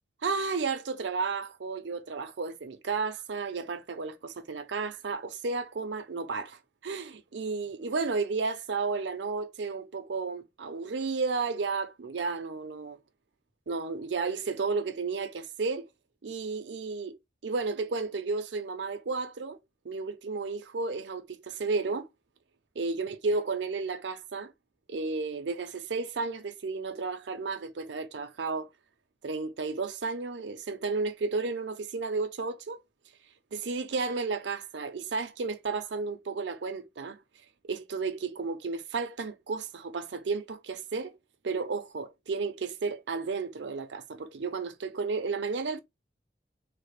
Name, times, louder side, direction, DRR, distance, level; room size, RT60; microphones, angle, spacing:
voice 1, 0.2-13.0 13.7-15.9 16.2-17.2 17.4-19.6 19.8-22.1 22.8-24.5 24.9-28.7 29.2-32.8 33.5-37.2 37.7-41.1 41.4-45.8, right 4 dB, 80° right, 0.6 m, -33 dB
3.3 x 2.1 x 3.2 m
head